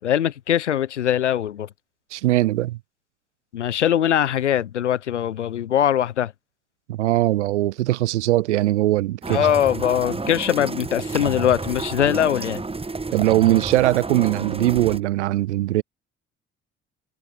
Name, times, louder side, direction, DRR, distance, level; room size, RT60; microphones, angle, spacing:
voice 1, 0.0-1.7 3.5-6.3 9.3-12.6, left 10 dB, 85° left, 1.1 m, -21 dB
voice 2, 2.1-2.8 6.9-9.5 13.1-15.8, right 16 dB, 80° right, 0.7 m, -20 dB
sound 1, 9.2-15.0, right 3 dB, 15° right, 1.4 m, -30 dB
figure-of-eight pair, 45°, 35 cm